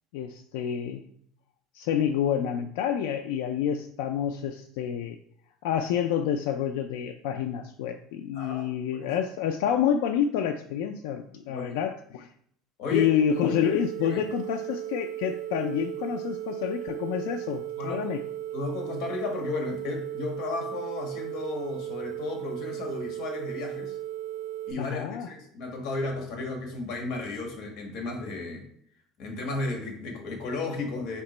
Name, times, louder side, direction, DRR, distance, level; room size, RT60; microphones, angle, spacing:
voice 1, 0.1-1.0 1.7-5.2 5.6-12.3 12.9-18.2 24.8-25.3, left 9 dB, 85° left, 6 dB, 0.3 m, -28 dB
voice 2, 8.3-8.7 11.5-11.7 12.8-13.2 14.0-14.2 17.8-18.1 18.5-24.0 24.7-28.6 29.2-31.2, left 3 dB, 55° left, 2 dB, 1.4 m, -34 dB
sound 1, 13.3-24.7, right 12 dB, 75° right, 0.6 m, -36 dB
4.4 x 2.9 x 4.2 m, 0.66 s
cardioid pair, 155°, 0 cm